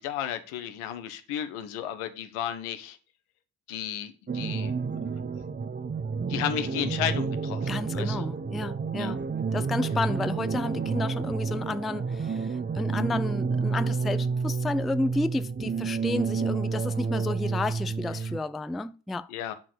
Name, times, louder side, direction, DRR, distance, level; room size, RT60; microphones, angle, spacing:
voice 1, 0.0-3.0 3.7-5.7 6.3-8.3 9.0-9.2 18.2-18.3 19.3-19.5, left 10 dB, 80° left, 1.1 m, -34 dB
sound 1, 4.3-18.4, right 5 dB, 20° right, 0.8 m, -30 dB
voice 2, 7.7-9.2 9.5-19.3, left 2 dB, ahead, 0.3 m, -31 dB
8.9 x 4.0 x 6.2 m
hypercardioid pair, 45°, 49 cm